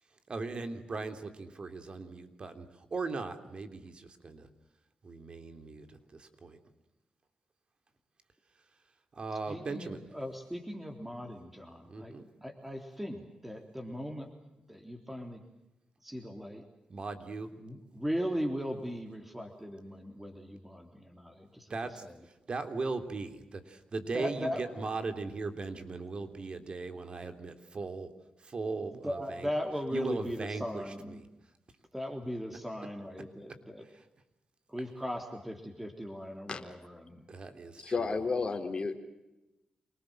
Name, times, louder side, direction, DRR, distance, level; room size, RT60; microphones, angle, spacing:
voice 1, 0.3-4.5 5.0-6.6 9.1-10.1 11.9-12.2 16.9-17.5 21.7-28.1 28.4-29.5 29.9-31.2 33.8-34.1 37.3-38.2, right 3 dB, 50° right, 8 dB, 3.4 m, -38 dB
voice 2, 9.5-12.1 12.4-14.3 14.7-15.4 16.0-16.6 17.6-21.7 22.0-22.1 24.1-24.6 29.0-31.2 31.9-33.8 34.7-37.2, equal, 10° right, 4 dB, 3.5 m, -38 dB
voice 3, 37.8-39.0, left 4 dB, 40° left, 3 dB, 3.8 m, -31 dB
28.0 x 20.0 x 7.7 m, 0.96 s
cardioid pair, 65°, 2 cm